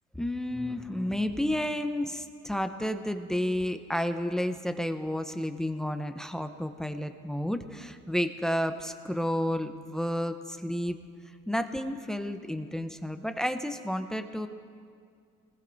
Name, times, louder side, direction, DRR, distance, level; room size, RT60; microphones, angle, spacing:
voice 1, 0.1-11.0 11.5-14.5, equal, 5° left, 7 dB, 0.8 m, -31 dB
25.5 x 20.5 x 2.7 m, 2.2 s
cardioid pair, 100°, 20 cm